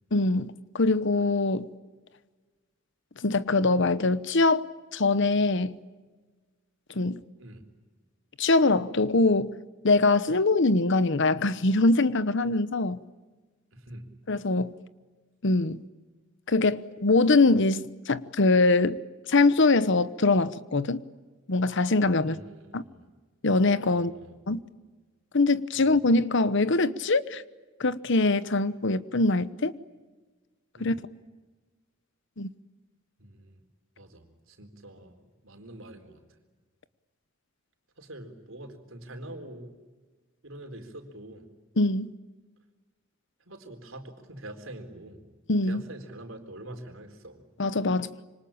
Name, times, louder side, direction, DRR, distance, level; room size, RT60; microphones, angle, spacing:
voice 1, 0.1-1.7 3.2-4.7 4.9-5.8 6.9-7.2 8.4-9.6 9.8-13.0 14.3-14.8 15.4-15.8 16.5-19.0 19.3-21.0 21.5-22.4 22.7-22.8 23.4-24.1 24.5-24.6 25.3-27.4 27.8-29.7 30.8-30.9 32.4-32.5 41.8-42.1 45.5-45.8 47.6-48.1, left 3 dB, 60° left, 1.0 m, -23 dB
voice 2, 13.7-14.0 22.2-23.0 23.9-24.4 25.7-25.9 30.8-31.0 33.2-33.6 34.0-36.2 38.0-39.7 40.4-41.5 43.5-45.3 45.7-47.5, right 1 dB, 75° right, 4.1 m, -45 dB
26.5 x 25.0 x 8.8 m
head